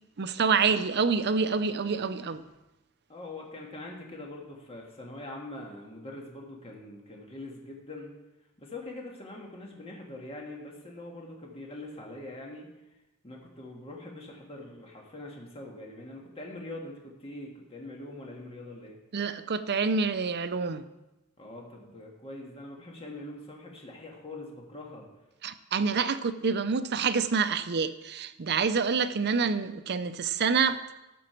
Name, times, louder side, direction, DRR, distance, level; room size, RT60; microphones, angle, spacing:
voice 1, 0.2-2.4 19.1-20.8 25.4-30.9, right 5 dB, 50° right, 11 dB, 0.6 m, -27 dB
voice 2, 3.1-8.1 8.6-12.7 13.2-19.0 21.4-25.1, left 2 dB, 25° left, -1 dB, 1.7 m, -43 dB
12.5 x 7.6 x 4.5 m, 0.99 s
head